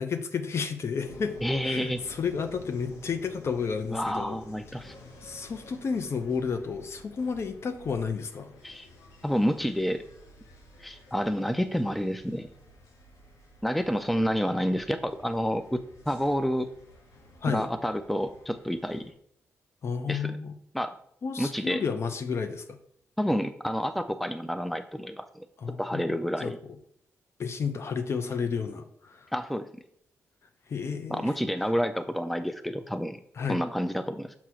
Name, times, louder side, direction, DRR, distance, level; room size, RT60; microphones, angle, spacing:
voice 1, 0.0-1.4 1.6-4.4 5.2-8.5 17.4-17.7 19.8-20.6 21.2-22.8 25.6-26.8 27.4-29.3 30.7-31.3 33.4-33.6, left 5 dB, 55° left, 8 dB, 0.7 m, -32 dB
sound 1, 1.0-19.1, left 1 dB, 85° left, 1.0 m, -52 dB
voice 2, 1.4-2.0 3.9-4.9 8.6-8.9 9.2-10.0 10.8-12.5 13.6-16.7 17.5-19.1 20.1-20.4 20.7-20.9 21.4-21.8 23.2-25.4 25.8-26.6 29.3-29.7 31.1-33.2 33.5-34.3, equal, ahead, 10 dB, 0.4 m, -29 dB
6.1 x 2.9 x 5.7 m, 0.68 s
cardioid pair, 85°, 5 cm